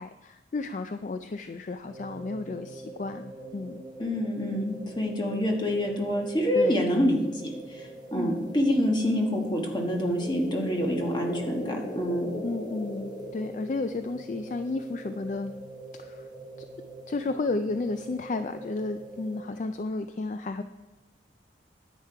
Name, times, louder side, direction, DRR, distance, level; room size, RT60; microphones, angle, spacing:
voice 1, 0.0-3.8 6.5-6.7 8.1-8.5 12.4-15.5 15.9-16.3 16.6-16.7 17.1-20.6, left 3 dB, 40° left, 9 dB, 0.3 m, -33 dB
sound 1, 1.8-19.4, right 2 dB, 25° right, 1.0 m, -44 dB
voice 2, 4.0-12.3, equal, 25° left, 1 dB, 1.3 m, -27 dB
sound 2, 9.8-14.0, left 1 dB, 70° left, 2.4 m, -38 dB
10.0 x 8.3 x 4.6 m, 1.1 s
head